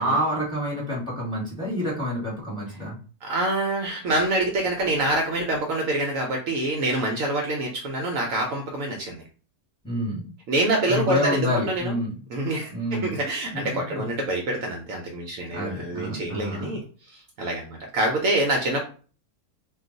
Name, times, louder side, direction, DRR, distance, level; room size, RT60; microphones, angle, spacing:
voice 1, 0.0-3.0 9.8-10.3 10.9-12.1 12.7-13.2 13.5-14.1 15.5-16.8, left 1 dB, 5° left, -4 dB, 1.1 m, -28 dB
voice 2, 3.2-9.2 10.5-11.9 12.3-18.8, right 2 dB, 70° right, 1 dB, 0.9 m, -26 dB
2.4 x 2.3 x 3.8 m, 0.39 s
omnidirectional pair, 1.6 m